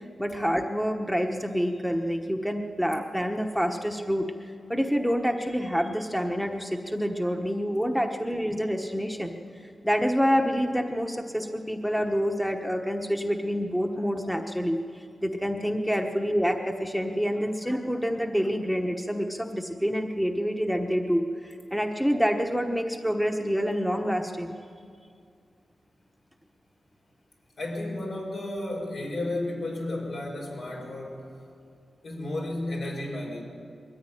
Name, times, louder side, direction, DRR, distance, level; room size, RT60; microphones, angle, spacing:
voice 1, 0.2-4.3 4.7-9.3 9.8-24.6, equal, 5° left, 4 dB, 1.2 m, -27 dB
voice 2, 27.6-31.4 32.0-33.4, left 1 dB, 70° left, 0 dB, 5.5 m, -33 dB
21.5 x 14.5 x 9.9 m, 2.2 s
wide cardioid pair, 100°, 0 cm